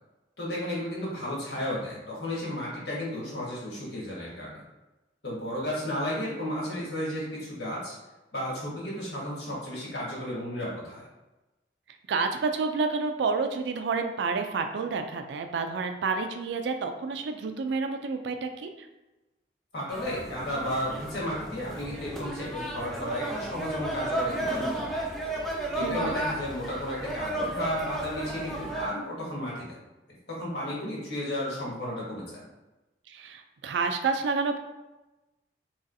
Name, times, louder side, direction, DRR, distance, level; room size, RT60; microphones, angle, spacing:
voice 1, 0.4-4.6 5.2-7.9 8.3-11.1 19.7-25.0 25.7-29.8 30.3-32.4, left 1 dB, 70° left, -5 dB, 1.4 m, -33 dB
voice 2, 12.1-18.9 25.8-26.2 33.1-34.6, right 4 dB, 80° right, 7 dB, 0.3 m, -29 dB
sound 1, 19.9-28.9, right 1 dB, ahead, 0.4 m, -33 dB
4.0 x 3.1 x 2.6 m, 1.1 s
head